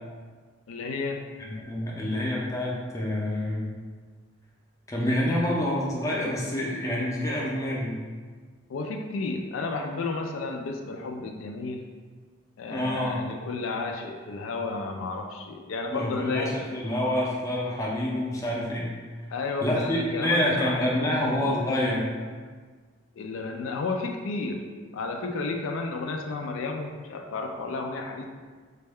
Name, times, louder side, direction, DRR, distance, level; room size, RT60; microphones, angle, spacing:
voice 1, 0.7-1.2 8.7-11.8 12.6-16.7 19.3-21.4 23.2-24.6 24.9-28.2, left 3 dB, 80° left, 4 dB, 0.3 m, -32 dB
voice 2, 1.4-3.7 4.9-8.0 12.7-13.2 15.9-19.0 19.6-22.0, left 1 dB, 15° left, -4 dB, 0.5 m, -27 dB
4.0 x 2.2 x 3.5 m, 1.5 s
head